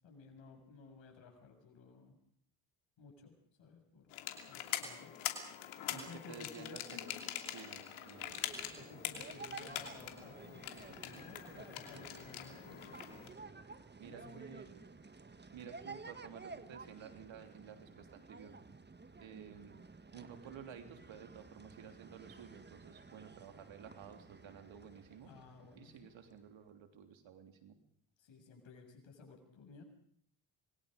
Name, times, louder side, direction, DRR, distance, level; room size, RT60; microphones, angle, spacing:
voice 1, 0.0-2.2 3.0-4.1 4.5-5.1 5.9-6.8 8.7-13.0 14.1-14.4 25.2-26.1 28.2-29.8, left 5 dB, 70° left, 3 dB, 7.7 m, -55 dB
sound 1, 4.1-13.3, left 11 dB, 90° left, 2.9 m, -44 dB
voice 2, 5.9-8.4 14.0-14.8 15.5-18.5 19.2-19.8 20.1-25.3 25.7-27.7, right 8 dB, 70° right, 6 dB, 3.4 m, -53 dB
sound 2, 8.0-26.5, right 4 dB, 20° right, 1.6 m, -53 dB
26.0 x 22.0 x 5.3 m, 0.64 s
supercardioid pair, 65°, 47 cm